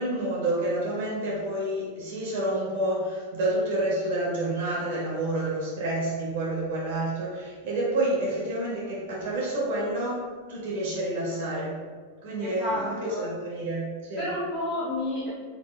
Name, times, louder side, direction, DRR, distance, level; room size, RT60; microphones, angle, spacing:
voice 1, 0.0-11.8 12.2-14.3, right 1 dB, 55° right, -6 dB, 1.1 m, -29 dB
voice 2, 12.4-13.2 14.2-15.3, left 1 dB, 15° left, -11 dB, 1.0 m, -30 dB
4.6 x 2.6 x 2.3 m, 1.5 s
figure-of-eight pair, 90°, 0 cm